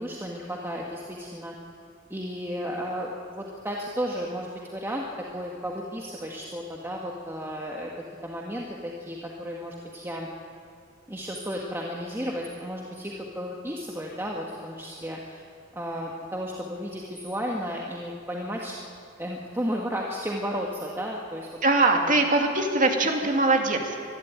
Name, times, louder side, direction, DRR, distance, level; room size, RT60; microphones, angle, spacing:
voice 1, 0.0-1.6 2.1-5.1 5.3-10.3 11.1-15.4 15.7-18.8 19.2-21.5 22.0-22.1, equal, 10° right, -2 dB, 1.6 m, -33 dB
voice 2, 21.6-24.0, right 2 dB, 40° right, 3 dB, 2.4 m, -22 dB
24.0 x 12.0 x 9.4 m, 2.3 s
head